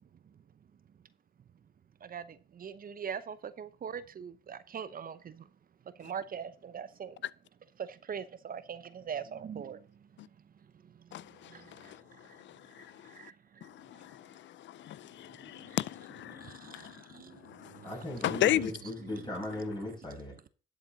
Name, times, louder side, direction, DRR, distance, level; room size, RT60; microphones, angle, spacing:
voice 1, 2.0-5.5 6.0-7.2 7.8-9.8 10.9-12.4 12.8-13.7 15.5-15.8 16.3-18.5 19.0-19.5, right 7 dB, 45° right, 0.8 m, -43 dB
voice 2, 11.1-13.3 13.6-17.1 17.4-17.9 18.2-18.7, left 13 dB, 70° left, 0.5 m, -35 dB
voice 3, 17.8-20.3, left 1 dB, 20° left, 7.1 m, -38 dB
12.0 x 7.6 x 4.0 m
cardioid pair, 90°, 20 cm